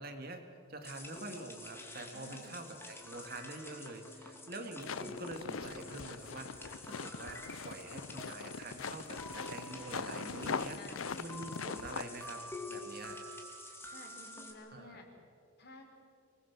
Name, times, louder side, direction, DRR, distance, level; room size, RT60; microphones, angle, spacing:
voice 1, 0.0-10.8 11.2-13.2 14.7-15.0, right 2 dB, 45° right, 5 dB, 2.5 m, -46 dB
sound 1, 0.8-14.5, left 2 dB, 10° left, 2.8 m, -48 dB
voice 2, 2.1-2.6 10.7-11.1 13.9-15.1 15.6-15.9, left 2 dB, 50° left, 2 dB, 4.5 m, -53 dB
sound 2, 4.8-12.0, left 5 dB, 80° left, 0.7 m, -42 dB
25.5 x 20.0 x 7.7 m, 2.3 s
head